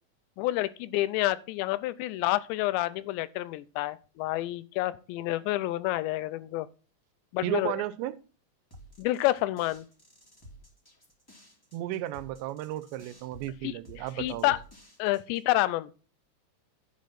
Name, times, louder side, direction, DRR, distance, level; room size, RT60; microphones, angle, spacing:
voice 1, 0.4-6.7 7.3-7.7 9.0-9.8 13.6-13.7 14.2-14.6 15.0-15.9, left 17 dB, 85° left, 2.9 m, -28 dB
voice 2, 7.4-8.2 11.7-14.6, right 14 dB, 85° right, 2.9 m, -34 dB
sound 1, 8.7-15.5, equal, 15° left, 0.7 m, -53 dB
11.5 x 5.2 x 5.7 m
omnidirectional pair, 5.0 m